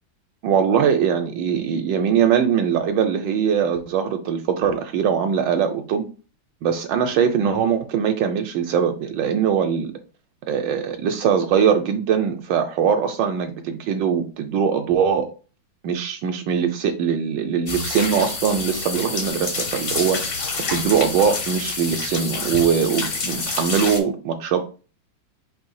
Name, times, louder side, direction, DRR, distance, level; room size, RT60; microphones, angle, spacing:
voice 1, 0.4-6.1 6.6-9.9 10.5-15.3 15.8-20.4 20.7-24.6, right 7 dB, 75° right, 1.2 m, -21 dB
sound 1, 17.7-24.0, left 4 dB, 50° left, 0.7 m, -28 dB
4.2 x 2.7 x 4.6 m
omnidirectional pair, 2.0 m